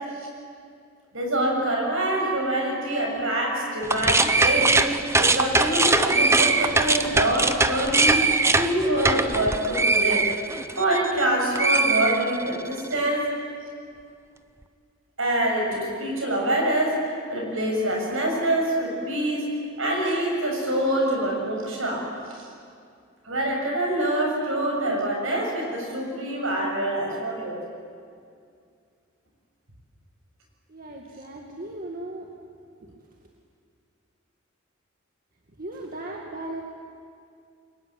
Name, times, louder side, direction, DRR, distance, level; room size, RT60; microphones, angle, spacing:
voice 1, 1.1-4.8 5.1-8.2 8.5-10.3 10.8-13.2 15.2-19.5 19.8-22.0 22.3-22.4 23.2-27.6, right 1 dB, 70° right, 0 dB, 7.4 m, -25 dB
sound 1, 3.8-11.2 11.5-12.7, right 3 dB, 15° right, 0.9 m, -22 dB
voice 2, 30.7-32.3 35.6-36.6, right 1 dB, 45° right, 0 dB, 2.1 m, -36 dB
29.0 x 23.0 x 9.0 m, 2.3 s
head